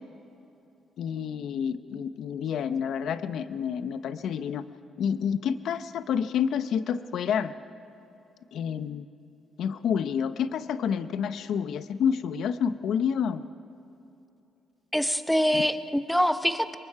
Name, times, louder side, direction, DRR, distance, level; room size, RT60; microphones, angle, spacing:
voice 1, 1.0-4.6 5.0-7.5 8.5-9.0 9.6-13.4 15.5-15.6, left 7 dB, 70° left, 12 dB, 0.8 m, -29 dB
voice 2, 14.9-16.8, equal, 5° left, 10 dB, 0.9 m, -24 dB
26.5 x 22.5 x 4.8 m, 2.9 s
cardioid pair, 90°, 0 cm